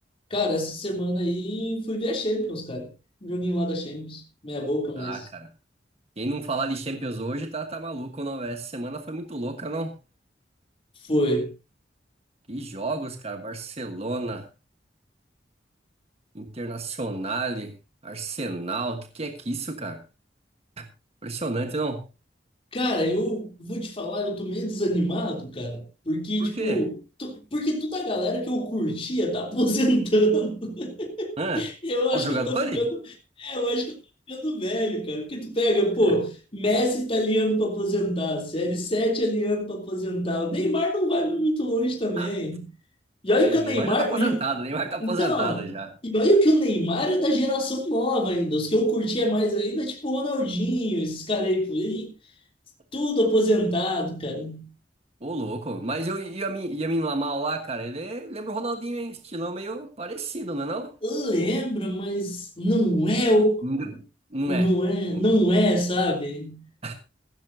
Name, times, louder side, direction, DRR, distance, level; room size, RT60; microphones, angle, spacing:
voice 1, 0.3-2.9 3.2-5.2 11.1-11.5 22.7-33.0 33.4-33.9 34.3-42.6 43.2-44.4 45.0-45.7 46.0-52.1 52.9-54.7 61.0-63.6 64.5-66.6, equal, 30° left, 3.2 m, -25 dB
voice 2, 5.0-5.5 6.2-10.0 12.5-14.5 16.3-17.7 18.0-20.0 20.8-20.9 21.2-22.0 26.4-26.9 31.4-31.7 32.1-32.8 36.0-36.1 42.2-42.3 43.4-45.9 55.2-60.9 63.6-63.9 64.3-64.7 65.1-65.2 66.8-66.9, right 2 dB, 35° right, 1.3 m, -30 dB
15.5 x 15.5 x 2.7 m
head